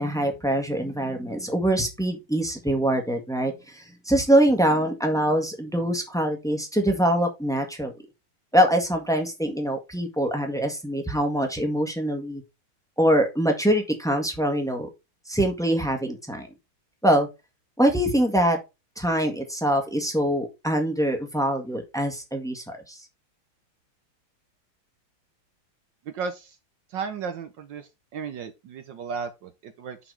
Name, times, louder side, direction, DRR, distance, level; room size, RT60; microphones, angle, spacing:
voice 1, 0.0-7.9 8.5-12.4 13.0-14.9 15.3-16.5 17.0-17.3 17.8-18.6 19.0-23.0, right 1 dB, ahead, 1.4 m, -24 dB
voice 2, 26.1-26.6 26.9-30.0, right 5 dB, 65° right, 1.4 m, -34 dB
6.1 x 5.9 x 4.6 m
omnidirectional pair, 2.3 m